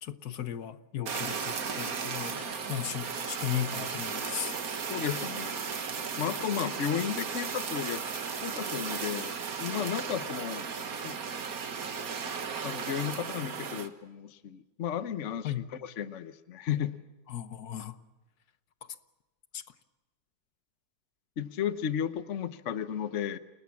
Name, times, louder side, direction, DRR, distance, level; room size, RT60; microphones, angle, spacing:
voice 1, 0.0-4.5 15.4-15.6 17.3-18.0 19.5-19.6, left 10 dB, 70° left, 12 dB, 1.5 m, -36 dB
Fire, 1.1-13.9, right 6 dB, 60° right, 1.9 m, -35 dB
voice 2, 4.9-5.6 6.2-8.0 8.4-9.3 9.6-10.7 11.0-11.2 12.6-16.9 21.4-23.4, left 9 dB, 50° left, 12 dB, 1.2 m, -33 dB
29.0 x 20.0 x 7.2 m, 1.1 s
omnidirectional pair, 1.8 m